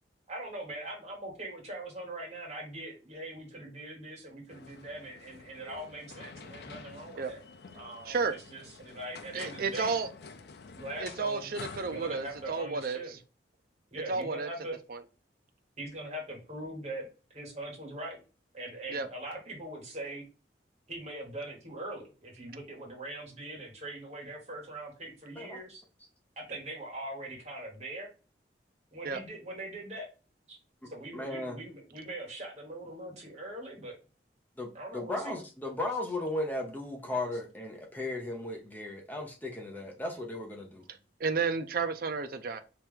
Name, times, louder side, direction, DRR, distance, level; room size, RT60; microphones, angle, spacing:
voice 1, 0.3-7.4 7.7-10.0 10.7-13.1 13.9-14.8 15.8-18.2 18.5-20.2 20.9-25.8 26.4-28.1 28.9-30.1 30.5-30.6 30.9-34.0 34.7-35.4 35.9-36.0 37.3-37.4 39.9-40.0 40.7-40.8, right 1 dB, 40° right, -1 dB, 1.6 m, -42 dB
sound 1, 4.5-12.6, left 4 dB, 60° left, 0.5 m, -48 dB
voice 2, 8.0-8.4 9.3-10.1 11.0-13.2 14.1-14.5 14.9-15.0 18.9-19.1 29.0-29.2 40.9-42.6, right 4 dB, 55° right, 8 dB, 0.5 m, -32 dB
voice 3, 31.1-31.6 34.6-40.8, left 2 dB, 10° left, 0 dB, 0.6 m, -36 dB
3.3 x 2.9 x 3.5 m, 0.33 s
head